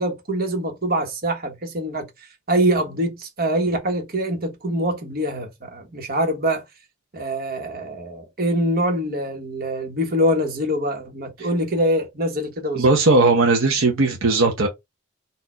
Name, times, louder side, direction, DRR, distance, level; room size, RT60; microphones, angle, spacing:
voice 1, 0.0-2.1 2.5-6.6 7.1-12.9, right 1 dB, 50° right, 1.4 m, -24 dB
voice 2, 12.7-14.7, right 3 dB, 70° right, 0.9 m, -17 dB
4.3 x 2.6 x 4.5 m
head